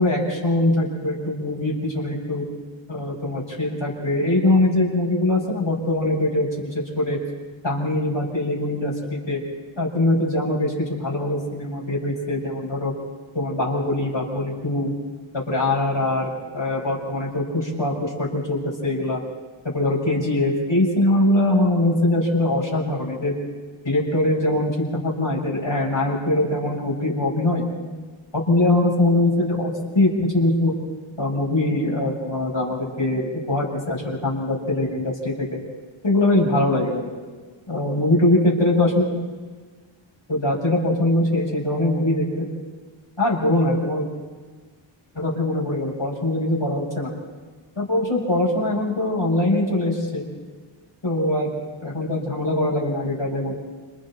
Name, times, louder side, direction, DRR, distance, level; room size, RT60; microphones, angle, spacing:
voice 1, 0.0-2.4 2.9-6.5 7.0-7.2 7.6-9.4 9.8-12.9 13.3-14.9 15.3-16.3 16.5-19.2 19.7-23.4 23.8-27.6 28.3-30.7 31.2-35.5 36.0-37.1 37.7-39.1 40.3-42.5 43.2-44.1 45.1-47.1 47.8-50.2 51.0-53.6, left 1 dB, 65° left, -5 dB, 7.3 m, -22 dB
30.0 x 27.5 x 4.5 m, 1.4 s
wide cardioid pair, 60°, 48 cm